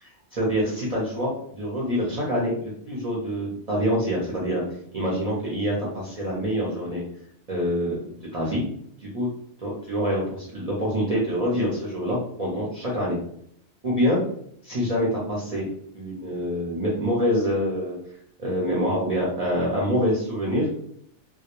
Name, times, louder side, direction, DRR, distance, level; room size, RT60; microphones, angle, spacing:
voice 1, 0.0-4.6 4.9-7.0 7.5-8.0 8.3-8.6 9.0-9.3 9.6-13.2 13.8-14.2 14.6-15.7 15.9-18.0 18.4-20.7, equal, 45° right, -5 dB, 0.6 m, -26 dB
2.2 x 2.1 x 2.9 m, 0.67 s
omnidirectional pair, 1.2 m